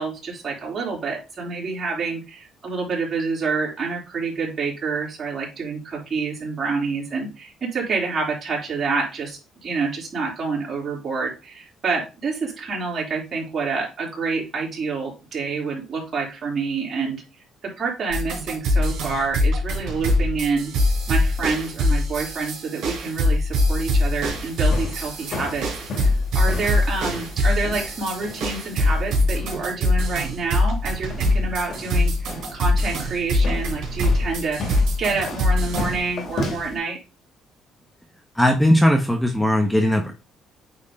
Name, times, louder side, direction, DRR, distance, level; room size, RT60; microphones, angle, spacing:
voice 1, 0.0-17.2 17.6-20.7 21.1-25.7 26.0-26.1 26.3-37.0, right 4 dB, 40° right, -4 dB, 3.9 m, -27 dB
sound 1, 18.1-35.9, left 1 dB, 75° right, 3.2 m, -23 dB
sound 2, 24.3-36.8, left 2 dB, 60° left, 2.9 m, -35 dB
voice 2, 38.4-40.1, equal, 5° left, 3 dB, 1.2 m, -18 dB
8.8 x 3.6 x 3.8 m, 0.30 s
cardioid pair, 85°, 0 cm